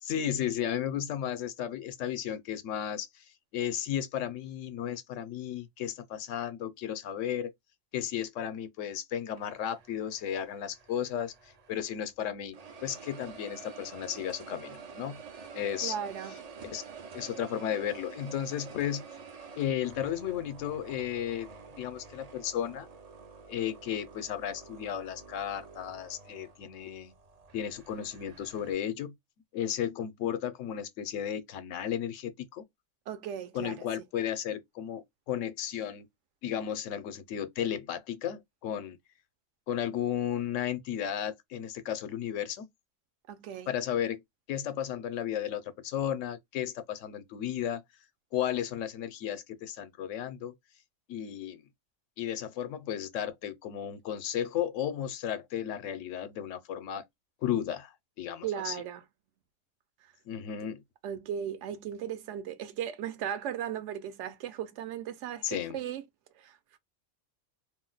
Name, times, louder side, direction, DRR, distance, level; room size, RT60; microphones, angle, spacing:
voice 1, 0.0-3.2 3.5-7.5 7.9-12.6 12.8-15.2 15.5-16.0 16.6-16.8 17.1-19.0 19.6-21.5 21.8-22.9 23.5-27.1 27.5-29.1 29.5-32.6 33.5-36.1 36.4-39.0 39.7-42.7 43.7-44.2 44.5-47.8 48.3-50.5 51.1-51.6 52.2-57.0 57.4-57.9 58.2-58.8 60.3-60.8 65.4-65.8, left 10 dB, 90° left, 1.0 m, -34 dB
sound 1, 9.4-12.1 12.5-28.7, right 5 dB, 55° right, 0.4 m, -49 dB
voice 2, 15.8-16.3 33.1-33.9 43.3-43.7 58.4-59.0 61.0-66.0 66.4-66.8, right 9 dB, 75° right, 0.9 m, -37 dB
2.5 x 2.1 x 3.8 m
omnidirectional pair, 1.3 m